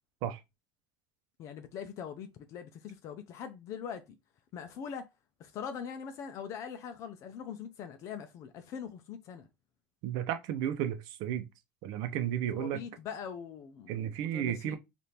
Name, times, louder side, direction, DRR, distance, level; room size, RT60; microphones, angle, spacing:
voice 1, 1.4-4.1 4.5-5.1 5.4-9.5 12.6-14.8, left 7 dB, 50° left, 0.5 m, -42 dB
voice 2, 10.0-11.5 11.8-12.8 13.9-14.8, right 10 dB, 70° right, 0.7 m, -33 dB
3.4 x 2.5 x 4.2 m
cardioid pair, 140°, 7 cm